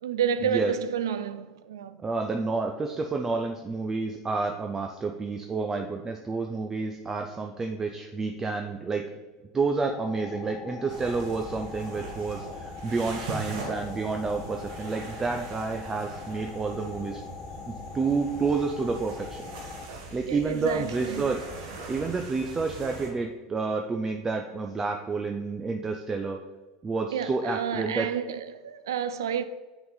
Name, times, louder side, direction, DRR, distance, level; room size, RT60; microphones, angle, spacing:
voice 1, 0.0-2.0 20.2-21.3 27.1-29.4, right 7 dB, 90° right, 0.4 m, -30 dB
voice 2, 2.0-9.0 9.5-17.2 17.9-19.4 20.1-21.5 21.9-26.4 26.8-28.1, right 4 dB, 20° right, 0.5 m, -29 dB
sound 1, 9.8-19.9, left 6 dB, 35° left, 0.6 m, -42 dB
sound 2, 10.9-23.1, right 2 dB, 70° right, 1.4 m, -41 dB
6.8 x 3.9 x 3.9 m
hypercardioid pair, 95°, 2 cm